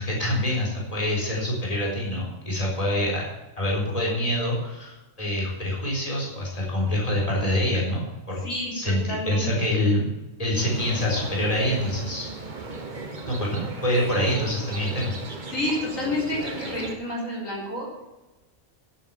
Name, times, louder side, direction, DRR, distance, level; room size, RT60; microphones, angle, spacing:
voice 1, 0.0-3.2 3.6-8.4 8.7-10.1 10.4-12.3 13.3-15.1, left 1 dB, 25° left, -3 dB, 4.1 m, -26 dB
voice 2, 8.4-9.8 15.5-18.0, left 1 dB, 80° left, -3 dB, 4.3 m, -30 dB
sound 1, 10.6-17.0, right 3 dB, 35° right, 1.5 m, -36 dB
11.0 x 9.7 x 7.1 m, 1.0 s
omnidirectional pair, 1.4 m